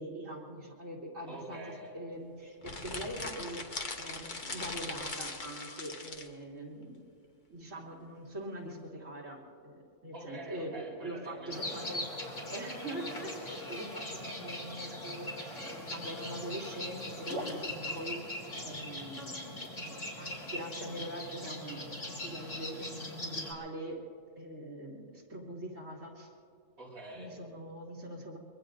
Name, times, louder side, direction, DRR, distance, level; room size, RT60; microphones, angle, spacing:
voice 1, 0.0-1.6 1.9-7.0 7.5-12.0 12.5-21.9 22.2-24.0 24.4-26.3 27.1-28.4, right 1 dB, 70° right, -4 dB, 3.1 m, -43 dB
voice 2, 1.3-1.9 10.1-12.3 26.8-27.3, right 1 dB, 50° right, -6 dB, 5.2 m, -46 dB
sound 1, 2.6-6.3, left 3 dB, 40° left, 1.2 m, -40 dB
sound 2, 11.5-23.5, left 1 dB, 65° left, 2.9 m, -40 dB
24.0 x 23.0 x 2.6 m, 2.5 s
omnidirectional pair, 1.4 m